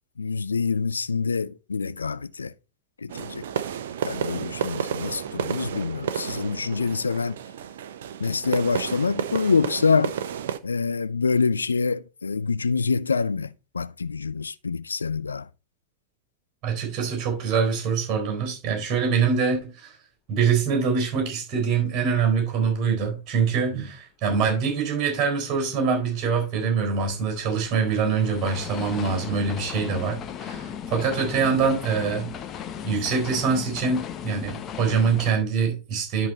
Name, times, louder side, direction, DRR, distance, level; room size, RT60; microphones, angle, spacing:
voice 1, 0.2-2.5 3.0-3.4 4.0-7.4 8.2-10.1 10.6-15.5, left 5 dB, 85° left, 0.4 m, -26 dB
sound 1, 3.1-10.6, right 9 dB, 65° right, 0.7 m, -31 dB
voice 2, 16.6-20.0 20.3-32.3 32.8-36.3, right 5 dB, 35° right, 4.2 m, -24 dB
sound 2, 26.0-35.3, left 8 dB, 35° left, 1.0 m, -36 dB
11.0 x 4.0 x 4.3 m
figure-of-eight pair, 95°, 0 cm